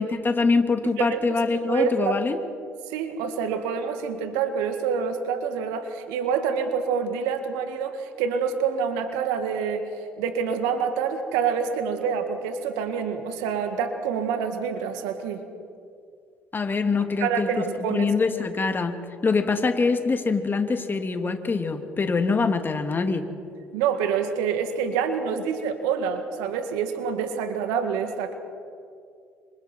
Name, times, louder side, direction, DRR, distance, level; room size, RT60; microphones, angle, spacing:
voice 1, 0.0-2.4 16.5-17.5 17.8-18.9 19.2-23.3, left 4 dB, 30° left, 6 dB, 2.6 m, -24 dB
voice 2, 0.8-1.2 1.5-2.1 2.9-9.9 10.2-15.4 17.2-18.1 23.7-28.4, right 6 dB, 80° right, 7 dB, 2.0 m, -27 dB
29.5 x 27.5 x 4.6 m, 2.3 s
hypercardioid pair, 55°, 6 cm